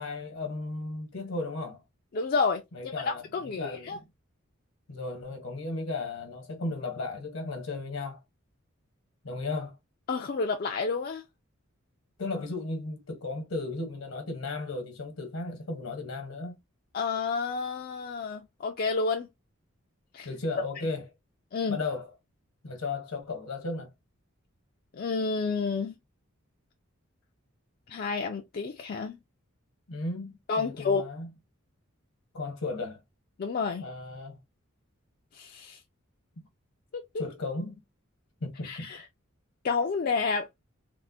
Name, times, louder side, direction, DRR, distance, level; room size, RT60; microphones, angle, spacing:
voice 1, 0.0-1.8 2.7-4.0 4.9-8.2 9.2-9.8 12.2-16.6 20.2-21.0 21.7-22.1 22.6-23.9 29.9-31.3 32.3-33.0 33.8-34.4 37.2-37.8 38.4-38.9, left 3 dB, 85° left, 1.1 m, -35 dB
voice 2, 2.1-4.0 10.1-11.2 16.9-19.3 20.1-20.3 21.5-21.8 24.9-25.9 27.9-29.2 30.5-31.1 33.4-33.8 35.3-35.8 37.1-37.2 38.6-39.0 39.6-40.5, left 4 dB, 45° left, 0.4 m, -30 dB
3.5 x 2.1 x 2.5 m
head